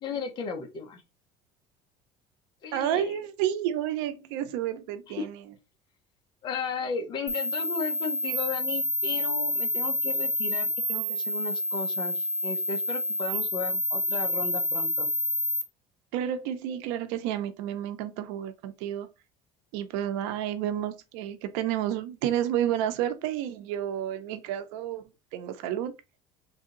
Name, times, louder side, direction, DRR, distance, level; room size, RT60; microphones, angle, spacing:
voice 1, 0.0-1.0 2.6-3.2 5.2-5.3 6.4-15.1, left 5 dB, 30° left, 0.8 m, -35 dB
voice 2, 2.7-5.4 16.1-19.1 19.7-25.0 25.3-25.9, right 11 dB, 85° right, 0.6 m, -30 dB
sound 1, 7.3-15.6, left 1 dB, 5° left, 0.5 m, -28 dB
3.4 x 2.7 x 3.8 m
cardioid pair, 170°, 14 cm